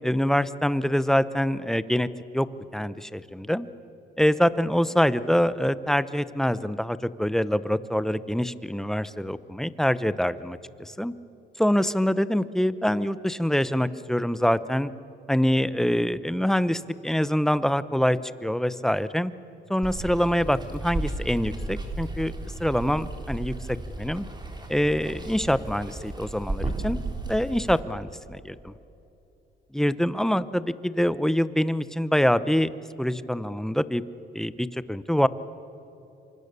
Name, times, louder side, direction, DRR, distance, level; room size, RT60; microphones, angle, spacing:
voice 1, 0.0-2.1 2.3-2.5 2.7-3.7 4.2-11.1 11.6-14.9 15.3-19.3 19.7-22.3 22.6-24.2 24.7-28.7 29.7-32.7 33.0-34.0 34.3-35.3, equal, ahead, 15 dB, 0.8 m, -25 dB
Water, 19.8-27.8, right 2 dB, 20° right, 3.6 m, -34 dB
27.0 x 24.0 x 6.8 m, 3.0 s
cardioid pair, 90°, 20 cm